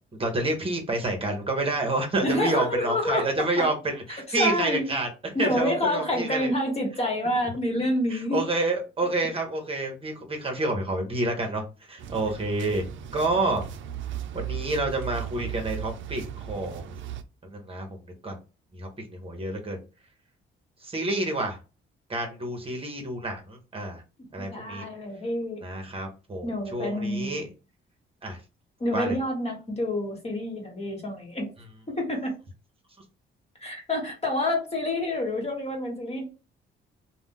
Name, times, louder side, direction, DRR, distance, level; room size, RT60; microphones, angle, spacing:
voice 1, 0.1-5.1 5.4-6.5 8.1-12.8 13.1-13.7 14.3-16.9 17.4-18.0 18.2-18.4 18.7-19.8 20.8-21.6 22.1-24.0 24.3-24.8 25.6-27.5 28.2-28.4 28.9-29.2, right 2 dB, 30° right, 0.9 m, -28 dB
voice 2, 2.2-3.7 4.3-4.9 5.3-8.5 24.4-25.6 26.4-27.5 28.8-31.5 31.9-32.3 33.6-36.3, left 1 dB, 30° left, 1.4 m, -28 dB
sound 1, 12.0-17.2, right 10 dB, 75° right, 0.5 m, -36 dB
2.4 x 2.2 x 3.6 m
cardioid pair, 90°, 20 cm